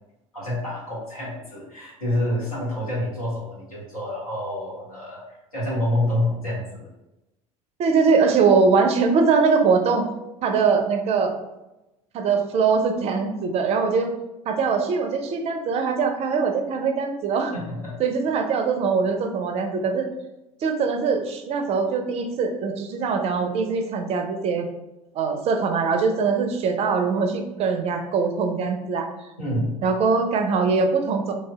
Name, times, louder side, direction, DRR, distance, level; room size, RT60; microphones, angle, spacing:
voice 1, 0.3-6.8 17.5-17.9 29.4-29.7, left 1 dB, 85° left, -8 dB, 1.1 m, -27 dB
voice 2, 7.8-10.0 10.4-11.3 12.1-14.1 14.5-17.5 18.0-20.1 20.6-24.7 25.1-29.1 29.8-31.3, right 5 dB, 35° right, 5 dB, 0.4 m, -22 dB
3.1 x 2.7 x 2.2 m, 0.96 s
figure-of-eight pair, 65°, 18 cm